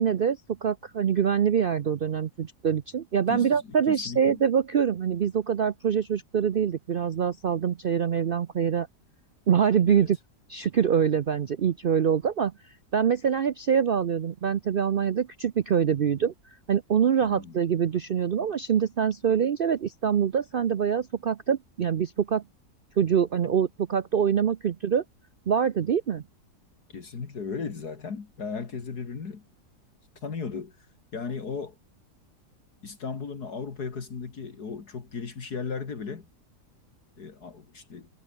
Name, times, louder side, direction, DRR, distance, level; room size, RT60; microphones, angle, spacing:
voice 1, 0.0-8.9 9.5-10.2 10.5-12.5 12.9-16.3 16.7-22.4 23.0-25.0 25.5-26.2, right 8 dB, 65° right, 0.5 m, -24 dB
voice 2, 3.9-4.4 9.8-10.1 17.2-17.5 26.9-29.4 30.2-30.7 31.1-31.7 32.8-36.3 37.2-38.1, left 5 dB, 70° left, 2.8 m, -36 dB
omnidirectional pair, 1.7 m